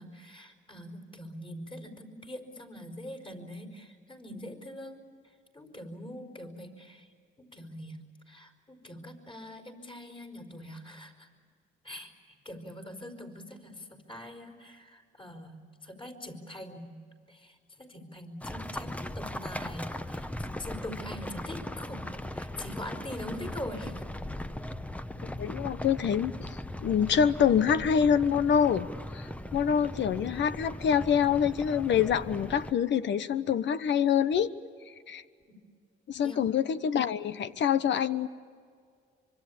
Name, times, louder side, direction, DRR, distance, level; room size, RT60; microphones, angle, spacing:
voice 1, 0.0-5.0 5.5-7.1 7.4-11.3 11.8-17.0 17.3-24.0 35.5-35.6 36.2-36.4, left 1 dB, 25° left, 5 dB, 4.8 m, -43 dB
sound 1, 18.4-32.7, left 1 dB, 5° left, 1.0 m, -39 dB
voice 2, 25.4-26.3 26.8-28.9 29.1-34.5 35.1-35.2 36.1-38.3, left 8 dB, 65° left, 13 dB, 1.1 m, -26 dB
25.0 x 25.0 x 8.7 m, 2.1 s
cardioid pair, 90°, 20 cm